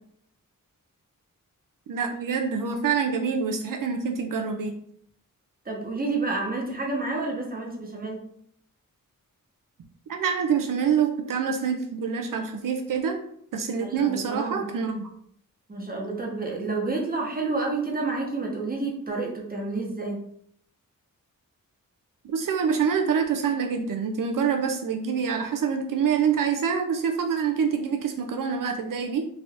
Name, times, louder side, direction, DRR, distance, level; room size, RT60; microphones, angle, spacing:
voice 1, 1.9-4.7 10.1-13.2 13.5-15.1 22.2-29.3, right 6 dB, 75° right, 4 dB, 0.5 m, -26 dB
voice 2, 5.6-8.2 13.8-14.6 15.7-20.2, right 3 dB, 25° right, -1 dB, 0.9 m, -29 dB
3.4 x 2.5 x 3.4 m, 0.67 s
wide cardioid pair, 130°, 34 cm